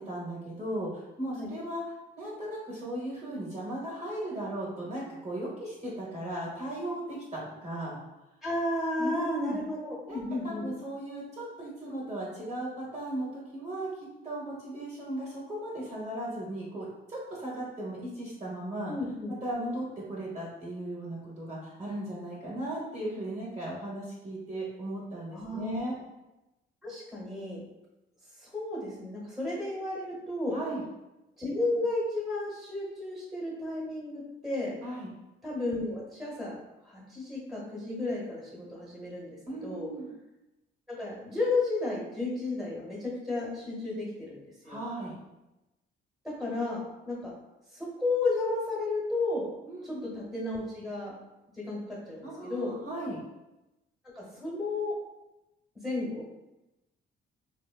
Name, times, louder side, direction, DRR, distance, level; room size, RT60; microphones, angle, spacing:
voice 1, 0.0-1.8 2.2-8.0 9.0-9.6 10.1-18.9 19.4-25.9 30.5-30.8 34.8-35.1 39.5-40.1 44.6-45.2 49.7-50.0 52.2-53.2, right 1 dB, 35° right, -6 dB, 0.8 m, -37 dB
voice 2, 8.4-10.7 18.9-19.3 25.3-25.8 26.8-27.6 28.4-30.6 31.4-34.8 35.4-36.6 36.8-39.9 40.9-44.8 46.4-47.3 47.7-49.5 49.8-51.1 51.5-52.7 54.1-54.9 55.7-56.3, left 2 dB, ahead, -5 dB, 1.0 m, -33 dB
2.9 x 2.1 x 2.3 m, 0.98 s
cardioid pair, 90°, 20 cm